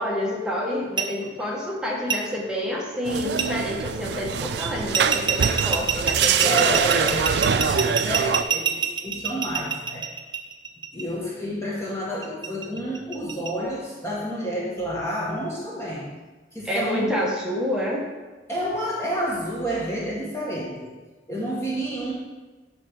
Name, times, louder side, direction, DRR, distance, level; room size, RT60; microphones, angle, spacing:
voice 1, 0.0-7.1 7.6-7.8 16.6-18.1, left 1 dB, 5° right, -3 dB, 1.0 m, -28 dB
sound 1, 1.0-1.1 2.1-2.2 3.4-3.5 4.9-11.0 12.2-13.5, right 7 dB, 25° right, 0.6 m, -25 dB
sound 2, 3.1-8.4, right 7 dB, 65° right, 0.3 m, -24 dB
voice 2, 6.4-10.0 10.9-16.1 16.5-17.1 18.5-20.9 21.3-22.1, right 1 dB, 15° left, -6 dB, 1.2 m, -29 dB
9.8 x 3.3 x 5.8 m, 1.3 s
head